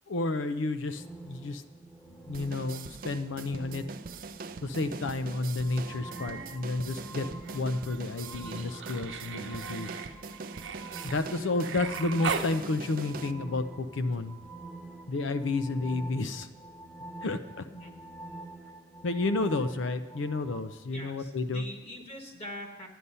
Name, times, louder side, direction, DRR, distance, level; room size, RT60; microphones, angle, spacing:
voice 1, 0.1-1.6 2.3-3.8 4.6-7.3 7.5-10.1 11.0-14.4 15.1-16.5 17.2-17.7 19.0-21.7, left 2 dB, 80° left, 10 dB, 0.6 m, -31 dB
sound 1, 0.9-20.6, right 2 dB, 10° left, 1.1 m, -47 dB
sound 2, 2.3-13.3, right 4 dB, 50° right, 0.4 m, -43 dB
Human voice, 5.8-6.6 6.9-12.5 14.1-14.2, right 5 dB, 80° right, 0.9 m, -39 dB
voice 2, 20.9-22.9, equal, 30° left, 2 dB, 1.5 m, -43 dB
11.0 x 10.0 x 5.5 m, 1.3 s
head